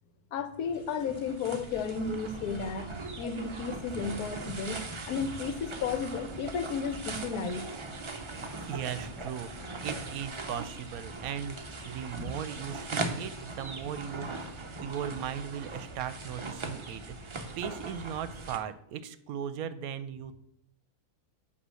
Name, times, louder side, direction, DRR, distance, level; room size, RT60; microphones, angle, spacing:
voice 1, 0.3-7.7, left 5 dB, 80° left, 10 dB, 1.2 m, -33 dB
sound 1, 0.6-18.6, right 3 dB, 45° right, 0.3 m, -40 dB
voice 2, 8.7-9.5 9.8-11.6 11.9-14.4 14.8-20.4, right 9 dB, 75° right, 13 dB, 1.0 m, -38 dB
8.1 x 2.9 x 6.2 m, 0.75 s
omnidirectional pair, 1.6 m